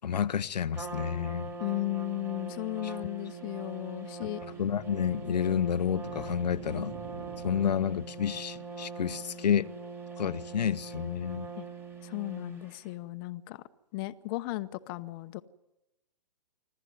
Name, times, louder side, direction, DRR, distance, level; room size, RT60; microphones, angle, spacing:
voice 1, 0.0-1.5 4.2-4.3 4.6-6.9 7.4-9.7 10.2-11.5, left 8 dB, 75° left, 0.8 m, -30 dB
Trumpet, 0.7-12.9, right 4 dB, 10° right, 2.4 m, -42 dB
voice 2, 1.6-4.4 11.6-11.7 12.0-13.6 13.9-15.4, left 18 dB, 30° left, 0.9 m, -35 dB
sound 1, 4.3-8.2, right 4 dB, 65° right, 4.6 m, -47 dB
26.0 x 15.5 x 9.6 m
hypercardioid pair, 135°, 21 cm